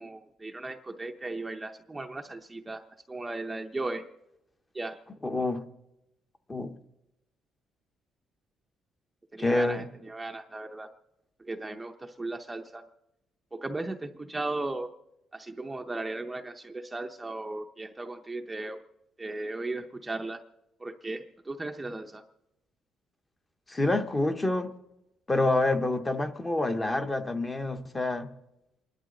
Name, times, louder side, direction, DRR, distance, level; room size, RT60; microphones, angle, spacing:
voice 1, 0.0-2.8 3.1-4.0 4.7-5.0 9.3-10.9 11.4-12.8 13.5-14.9 15.3-18.8 19.2-20.4 20.8-22.2, right 2 dB, 10° right, 4 dB, 0.6 m, -36 dB
voice 2, 5.2-5.6 6.5-6.8 9.4-9.9 23.7-24.7 25.3-28.3, left 2 dB, 15° left, 7 dB, 0.9 m, -27 dB
28.0 x 12.0 x 3.9 m, 0.89 s
cardioid pair, 145°, 0 cm